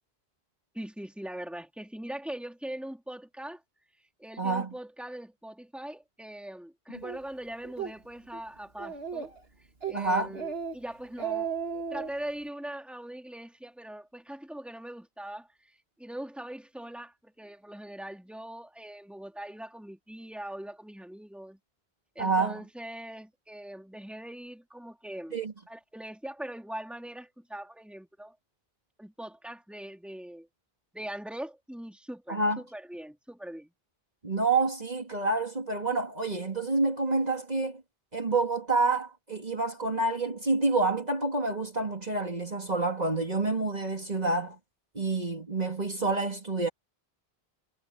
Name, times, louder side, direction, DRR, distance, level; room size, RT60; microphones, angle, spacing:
voice 1, 0.7-3.6 4.2-9.3 9.8-11.5 11.9-21.6 22.1-25.4 25.7-28.3 29.0-30.5 30.9-33.7, right 1 dB, ahead, 3.2 m, -41 dB
voice 2, 4.4-4.7 9.9-10.3 22.2-22.6 25.3-25.5 32.3-32.6 34.2-37.8 38.1-44.6 44.9-46.7, right 3 dB, 40° right, 2.6 m, -28 dB
Speech, 7.0-7.2 7.6-7.9 8.3-8.4 8.8-9.4 9.8-10.0 10.3-10.7 11.0-12.1, right 7 dB, 75° right, 2.5 m, -34 dB
omnidirectional pair, 1.0 m